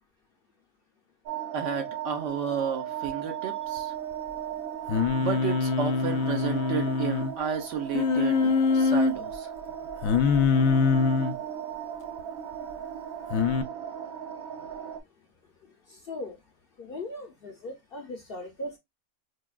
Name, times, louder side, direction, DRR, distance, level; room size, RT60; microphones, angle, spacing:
sound 1, 1.3-15.0, right 9 dB, 85° right, 1.1 m, -37 dB
voice 1, 1.5-3.9 5.2-9.5, right 7 dB, 65° right, 1.0 m, -32 dB
Singing, 4.9-7.3 7.9-9.1 10.0-11.4 13.3-13.6, left 5 dB, 80° left, 1.0 m, -24 dB
voice 2, 15.9-16.4 16.8-18.8, left 1 dB, 55° left, 0.7 m, -38 dB
4.8 x 2.2 x 2.3 m
omnidirectional pair, 1.4 m